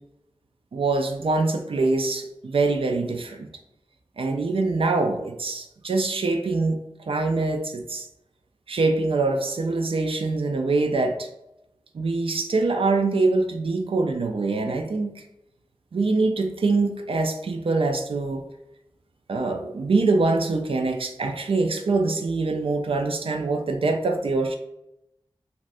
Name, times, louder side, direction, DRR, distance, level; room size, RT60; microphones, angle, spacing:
voice 1, 0.7-3.5 4.2-6.8 7.1-8.1 8.7-11.3 11.9-15.2 15.9-18.4 19.3-24.6, right 3 dB, 70° right, 4 dB, 0.4 m, -24 dB
2.6 x 2.5 x 3.3 m, 0.84 s
wide cardioid pair, 70°, 10 cm